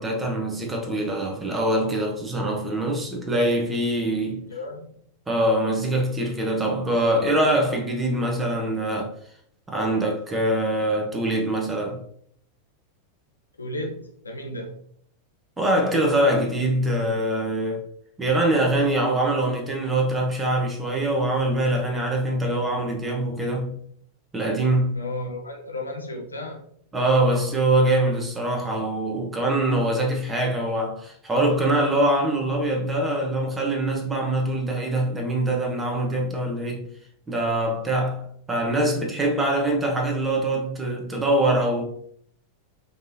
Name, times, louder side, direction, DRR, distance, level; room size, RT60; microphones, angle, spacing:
voice 1, 0.0-4.4 5.3-9.1 9.7-12.0 15.6-17.8 18.2-23.8 24.3-25.0 26.9-36.9 37.3-38.2 38.5-41.8, right 1 dB, 15° right, 1.1 m, -23 dB
voice 2, 4.5-5.0 13.6-14.7 24.9-26.7, left 1 dB, 80° left, 0.8 m, -34 dB
5.1 x 3.2 x 2.7 m
figure-of-eight pair, 90°, 0 cm